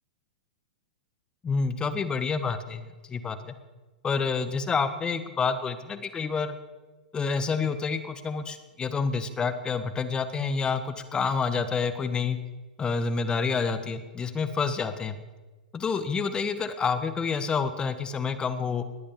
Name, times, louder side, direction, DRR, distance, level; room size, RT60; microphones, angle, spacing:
voice 1, 1.4-3.5 4.0-6.6 7.1-12.4 12.8-15.2 15.7-18.8, left 5 dB, 20° left, 11 dB, 1.4 m, -28 dB
20.5 x 8.6 x 7.0 m, 1.2 s
hypercardioid pair, 105°, 5 cm